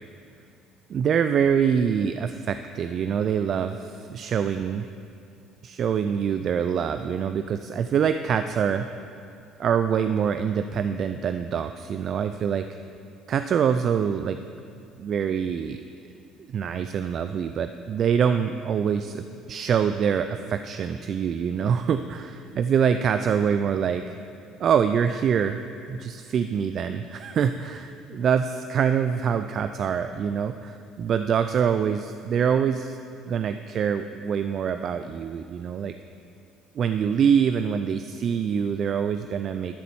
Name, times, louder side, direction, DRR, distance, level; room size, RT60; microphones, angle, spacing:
voice 1, 0.9-4.9 5.6-8.9 9.6-12.7 13.3-14.4 15.0-15.8 16.5-24.1 24.6-25.6 25.9-33.0 33.3-35.9 36.8-39.8, right 7 dB, 50° right, 9 dB, 0.3 m, -25 dB
12.0 x 4.3 x 7.1 m, 2.5 s
supercardioid pair, 90°, 0 cm